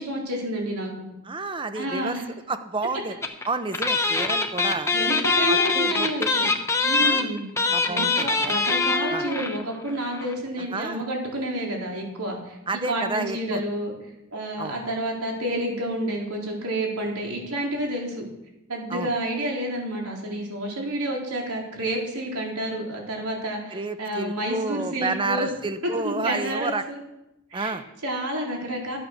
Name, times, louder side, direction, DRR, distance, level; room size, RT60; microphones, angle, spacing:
voice 1, 0.0-1.1 1.7-2.2 4.9-6.5 6.8-7.5 7.9-12.6 12.8-13.9 14.3-18.2 18.7-25.5 26.0-27.0 27.5-27.8 28.0-29.0, right 1 dB, 80° right, -1 dB, 3.9 m, -29 dB
voice 2, 1.2-2.2 2.5-3.2 3.5-4.9 5.5-6.3 7.0-7.3 7.6-8.5 9.1-9.2 10.6-11.0 12.7-13.6 14.6-14.8 18.9-19.1 23.7-26.8 27.5-27.8, right 3 dB, 20° right, 10 dB, 0.7 m, -30 dB
sound 1, 3.2-3.5 3.7-9.6 9.9-10.0 10.2-10.3, left 3 dB, 15° left, 1.0 m, -23 dB
13.5 x 9.0 x 6.5 m, 0.89 s
head